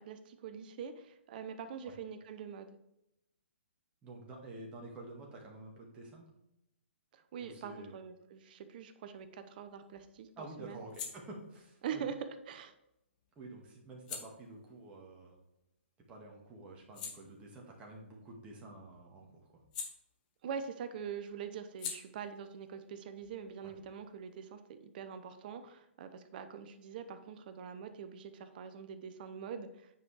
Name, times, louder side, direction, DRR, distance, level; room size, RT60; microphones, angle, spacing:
voice 1, 0.0-2.7 7.1-10.3 10.6-10.9 11.8-12.7 20.4-29.9, right 7 dB, 45° right, 10 dB, 0.8 m, -44 dB
voice 2, 4.0-6.3 7.4-8.0 10.4-12.0 13.4-15.4 16.1-19.5 23.6-23.7, right 2 dB, 20° right, -2 dB, 1.9 m, -49 dB
sound 1, 9.2-16.0 16.4-20.7 20.9-24.3, left 6 dB, 40° left, 1.6 m, -50 dB
9.2 x 5.2 x 3.4 m, 0.85 s
hypercardioid pair, 130°, 7 cm